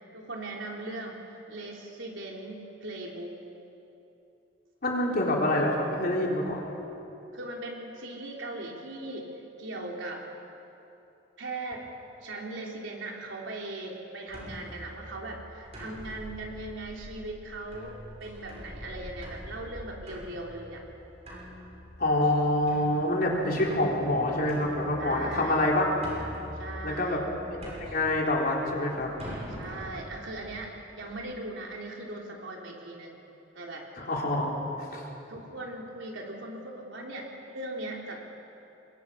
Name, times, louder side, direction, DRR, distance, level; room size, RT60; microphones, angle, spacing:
voice 1, 0.1-3.4 7.3-10.2 11.4-11.9 12.2-20.8 25.0-25.7 26.6-27.3 29.6-33.2 33.5-33.8 35.3-38.2, right 2 dB, 85° right, -1 dB, 3.6 m, -39 dB
voice 2, 4.8-6.6 22.0-25.8 26.8-27.2 27.8-29.1 34.0-34.5 34.8-35.1, left 1 dB, 50° left, -2 dB, 3.9 m, -26 dB
sound 1, 14.3-31.2, equal, 35° right, 7.4 m, -44 dB
26.5 x 22.5 x 5.8 m, 2.9 s
head